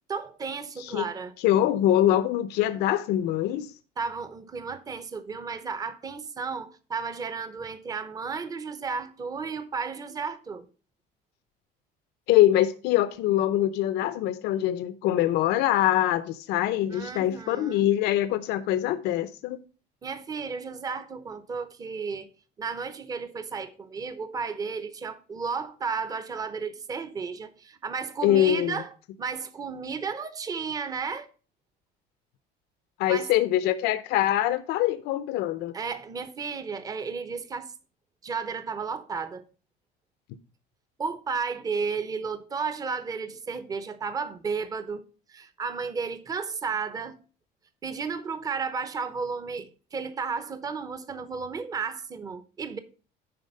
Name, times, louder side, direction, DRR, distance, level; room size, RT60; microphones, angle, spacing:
voice 1, 0.1-1.3 4.0-10.7 16.9-17.9 20.0-22.3 22.6-31.3 33.1-33.3 35.7-37.7 38.2-39.5 41.0-45.0 45.3-47.2 47.8-52.8, right 5 dB, 20° right, 0.8 m, -33 dB
voice 2, 0.8-1.1 1.4-3.7 12.3-19.6 28.2-28.8 33.0-35.7, left 13 dB, 65° left, 0.7 m, -24 dB
10.5 x 4.3 x 5.3 m
cardioid pair, 170°, 18 cm